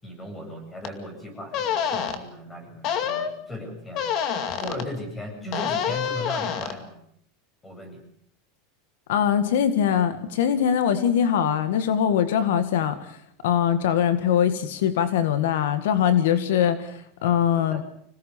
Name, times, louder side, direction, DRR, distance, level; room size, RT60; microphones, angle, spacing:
voice 1, 0.0-4.3 4.6-7.0 7.6-8.0 17.7-17.8, left 1 dB, 15° left, 4 dB, 7.9 m, -37 dB
sound 1, 0.8-0.9 1.5-2.2 2.8-3.3 3.9-4.8 5.5-6.7, left 8 dB, 45° left, 2.4 m, -27 dB
voice 2, 9.1-13.1 13.4-17.8, left 9 dB, 85° left, 11 dB, 1.8 m, -22 dB
26.0 x 18.0 x 6.9 m, 0.67 s
supercardioid pair, 145°, 0 cm